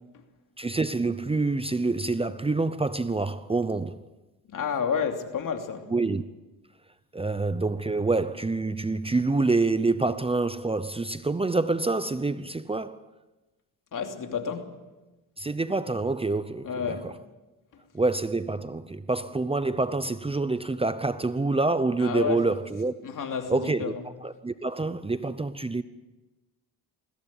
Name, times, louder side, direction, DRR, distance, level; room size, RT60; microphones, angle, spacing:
voice 1, 0.6-4.0 5.9-6.2 7.1-13.0 15.4-17.1 17.9-22.9 23.5-23.9 24.2-25.8, right 3 dB, 15° right, 0.7 m, -27 dB
voice 2, 4.5-5.9 13.9-14.7 16.6-17.1 22.0-22.4 23.0-23.9, left 6 dB, 60° left, 2.8 m, -30 dB
21.0 x 16.0 x 8.4 m
cardioid pair, 95°, 36 cm